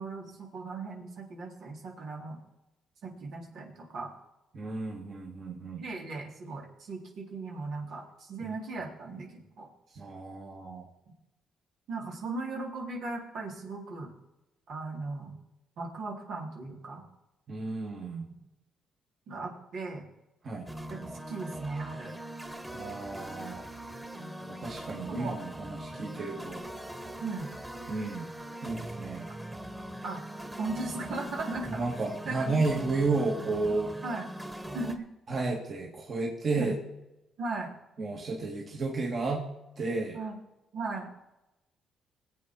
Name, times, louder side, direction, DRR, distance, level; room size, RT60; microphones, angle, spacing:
voice 1, 0.0-2.4 3.0-4.1 5.8-9.7 11.9-14.1 14.7-15.4 15.8-17.0 19.3-20.1 20.9-22.2 24.1-24.3 24.9-25.3 27.2-27.5 30.0-30.2 30.6-31.8 32.3-32.9 34.0-34.3 34.7-35.1 36.5-36.7 37.4-37.7 40.1-40.4 40.7-41.1, right 3 dB, 75° right, -1 dB, 3.9 m, -37 dB
voice 2, 4.5-5.8 8.4-8.5 10.0-10.9 17.5-18.2 20.4-20.7 22.7-23.7 24.5-26.6 27.9-28.3 28.6-29.3 31.8-33.9 35.3-36.7 38.0-39.5 39.8-40.2, right 3 dB, 45° right, -1 dB, 2.9 m, -32 dB
sound 1, 20.7-34.9, right 1 dB, 10° right, 1.8 m, -41 dB
20.0 x 8.6 x 4.8 m, 0.93 s
cardioid pair, 90°, 0 cm